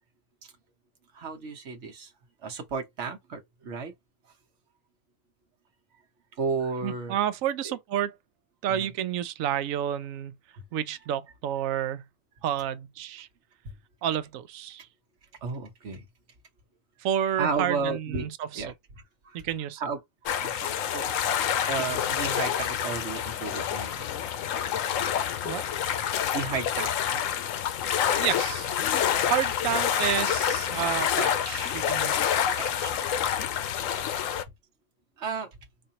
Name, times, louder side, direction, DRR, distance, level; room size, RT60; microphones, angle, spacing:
voice 1, 1.1-2.1 2.4-3.9 6.4-7.2 7.6-7.8 8.7-8.9 10.5-10.6 13.6-13.8 15.4-16.1 17.4-18.3 18.5-18.7 19.2-19.4 19.8-21.1 21.7-24.1 25.4-25.5 26.3-26.9 28.5-28.6 28.9-29.2 29.9-30.0 32.6-33.0 33.8-33.9 35.2-35.6, right 4 dB, 60° right, 1.2 m, -33 dB
voice 2, 6.8-8.2 8.6-10.3 10.7-12.0 12.4-13.3 14.0-14.9 17.0-18.6 19.3-19.8 25.4-25.6 28.2-28.7 29.3-32.2 32.6-32.8, right 10 dB, 85° right, 1.0 m, -30 dB
sound 1, 20.3-34.4, left 9 dB, 80° left, 1.0 m, -27 dB
4.3 x 2.5 x 2.8 m
omnidirectional pair, 1.4 m